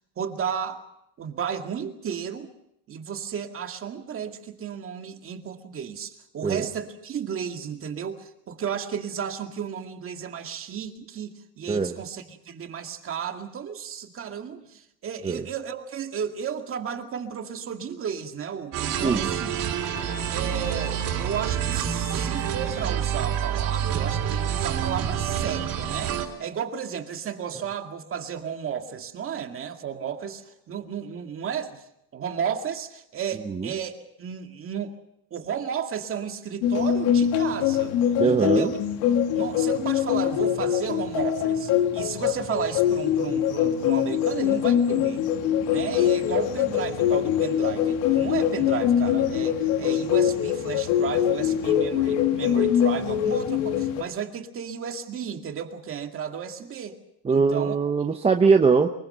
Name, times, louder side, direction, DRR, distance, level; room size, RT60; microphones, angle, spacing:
voice 1, 0.2-0.8 1.2-2.5 2.9-19.5 20.3-31.8 32.1-34.9 35.3-38.0 38.2-38.7 39.3-45.2 45.7-57.0 57.3-57.8, right 7 dB, 35° right, 5 dB, 2.2 m, -33 dB
sound 1, 18.7-26.3, right 9 dB, 55° right, 4.0 m, -27 dB
sound 2, 36.6-54.0, left 9 dB, 85° left, 2.4 m, -23 dB
voice 2, 38.2-38.7 57.2-58.9, right 5 dB, 15° right, 4 dB, 0.9 m, -21 dB
24.0 x 22.5 x 6.7 m, 0.81 s
cardioid pair, 155°, 38 cm